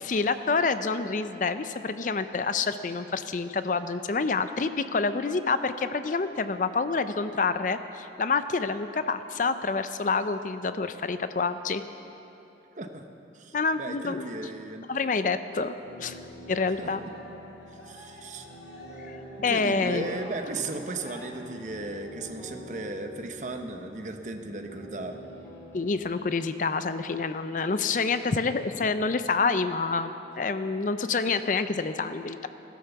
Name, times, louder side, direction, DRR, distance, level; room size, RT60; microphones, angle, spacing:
voice 1, 0.1-11.8 13.5-14.3 14.9-15.7 16.0-16.2 16.5-17.0 19.4-20.1 25.7-30.1 30.4-32.5, left 4 dB, 45° left, 11 dB, 0.5 m, -27 dB
voice 2, 13.3-14.9 16.6-17.1 17.7-18.5 19.5-25.2, right 2 dB, 40° right, 6 dB, 0.9 m, -36 dB
sound 1, 15.8-26.0, equal, 15° left, 3.2 m, -46 dB
Cheering, 16.8-22.3, left 1 dB, 75° left, 2.2 m, -49 dB
16.5 x 11.5 x 7.0 m, 3.0 s
head